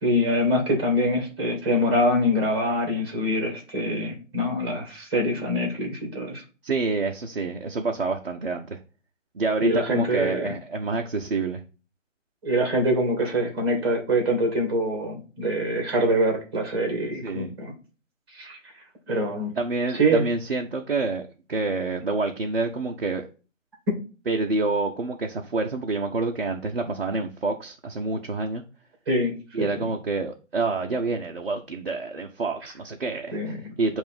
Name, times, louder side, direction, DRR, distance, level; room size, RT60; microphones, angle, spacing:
voice 1, 0.0-6.4 9.6-10.5 12.4-17.7 18.3-18.6 19.1-19.5 19.9-20.2 29.1-29.7 33.3-33.7, equal, 20° right, 2 dB, 1.4 m, -24 dB
voice 2, 6.6-8.8 9.3-11.6 17.2-17.5 19.6-23.3 24.3-28.6 29.5-34.0, right 3 dB, 50° right, 1 dB, 0.7 m, -27 dB
6.5 x 2.6 x 5.6 m, 0.35 s
figure-of-eight pair, 150°, 39 cm